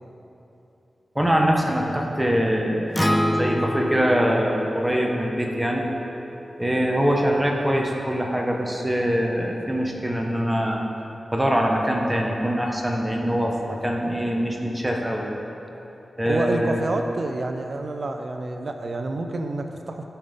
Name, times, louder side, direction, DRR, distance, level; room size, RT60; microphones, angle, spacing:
voice 1, 1.1-5.9 6.6-10.8 11.3-15.3 16.2-16.8, equal, 15° right, -1 dB, 1.5 m, -23 dB
Acoustic guitar, 3.0-7.2, equal, 5° left, 0.4 m, -28 dB
voice 2, 16.2-20.0, right 2 dB, 60° right, 5 dB, 0.7 m, -28 dB
14.5 x 5.6 x 3.8 m, 3.0 s
cardioid pair, 55°, 0 cm